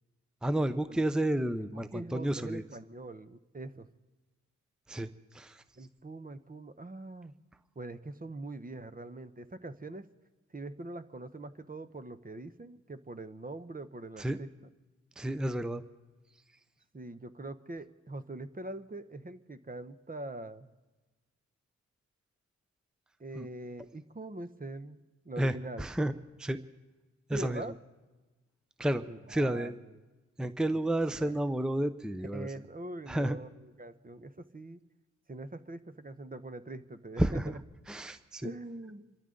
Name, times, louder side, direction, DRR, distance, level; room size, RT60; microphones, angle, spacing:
voice 1, 0.4-2.6 4.9-5.6 14.2-14.4 15.2-15.8 23.3-23.5 25.4-26.1 26.4-26.6 27.3-27.6 28.8-29.0 29.3-29.7 30.4-32.5 33.1-33.4 37.2-37.5 37.9-38.5, right 1 dB, ahead, 11 dB, 0.7 m, -31 dB
voice 2, 1.6-3.9 5.8-7.3 7.7-10.1 10.5-14.5 16.9-20.7 23.2-25.9 27.3-27.7 29.1-30.0 30.7-31.4 32.3-34.8 35.3-37.6 38.4-39.2, right 2 dB, 30° right, 11 dB, 1.0 m, -43 dB
27.0 x 13.5 x 3.9 m, 1.2 s
cardioid pair, 50°, 31 cm